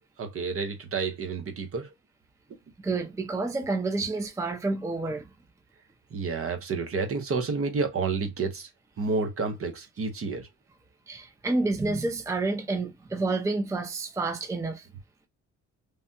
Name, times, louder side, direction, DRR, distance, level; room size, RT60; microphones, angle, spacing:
voice 1, 0.2-1.9 6.1-8.7 9.0-10.5, right 4 dB, 50° right, 1.0 m, -30 dB
voice 2, 2.8-5.3 11.1-14.9, right 3 dB, 10° right, 0.5 m, -29 dB
3.3 x 2.3 x 2.7 m
cardioid pair, 90°, 30 cm